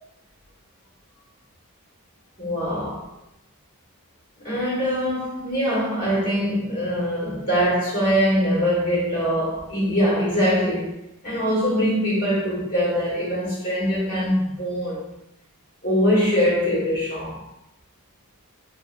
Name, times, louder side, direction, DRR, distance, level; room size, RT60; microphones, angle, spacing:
voice 1, 2.4-3.1 4.4-10.9 11.2-15.1 15.8-17.4, equal, 40° left, 1.3 m, -23 dB
4.0 x 2.1 x 2.4 m
head